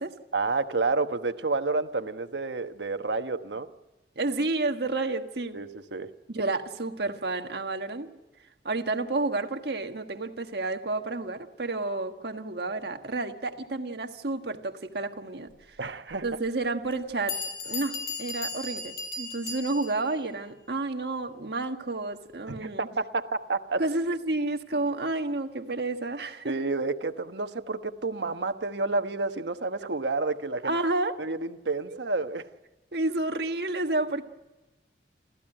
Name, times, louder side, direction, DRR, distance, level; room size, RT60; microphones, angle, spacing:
voice 1, 0.3-3.7 5.5-6.1 15.8-16.2 22.5-23.8 26.4-30.7 31.2-32.5, right 3 dB, 85° right, 8 dB, 1.2 m, -30 dB
voice 2, 4.1-5.6 6.3-8.1 8.6-15.8 16.2-17.4 17.7-22.9 23.8-26.6 30.6-31.2 31.9-32.0 32.9-34.2, right 2 dB, 70° right, 6 dB, 1.5 m, -30 dB
Bell, 16.1-16.2 16.9-17.0 17.3-20.1, left 3 dB, 55° left, 6.3 m, -35 dB
28.5 x 14.5 x 8.9 m, 1.1 s
head